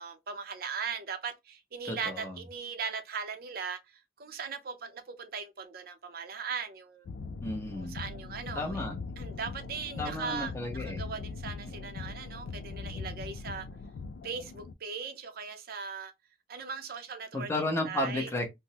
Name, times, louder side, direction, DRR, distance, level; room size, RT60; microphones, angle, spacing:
voice 1, 0.0-7.1 7.8-8.8 9.2-13.7 14.2-16.1 16.5-17.5 17.8-18.3, right 5 dB, 55° right, 0.6 m, -39 dB
voice 2, 1.9-2.4 7.4-8.0 8.5-9.0 10.0-11.0 17.3-18.5, left 1 dB, 15° left, 0.9 m, -33 dB
sound 1, 7.1-14.7, left 4 dB, 75° left, 0.3 m, -41 dB
3.4 x 2.1 x 2.8 m
head